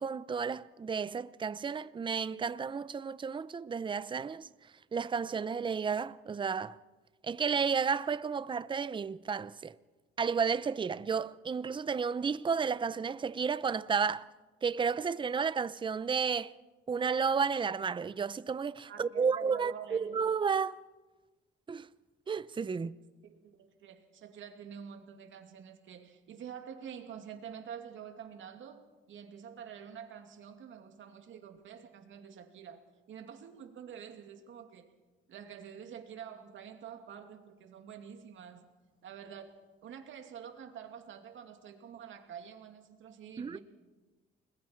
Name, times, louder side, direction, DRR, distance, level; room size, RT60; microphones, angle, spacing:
voice 1, 0.0-4.5 4.9-6.8 7.2-9.8 10.2-14.3 14.6-16.5 16.9-20.8 21.7-21.9 22.3-23.0 43.4-43.6, right 6 dB, 25° right, 0.6 m, -32 dB
voice 2, 18.9-20.2 23.2-34.9 35.3-38.7 39.0-43.6, right 8 dB, 65° right, 2.5 m, -47 dB
29.5 x 21.0 x 4.6 m
cardioid pair, 100°, 21 cm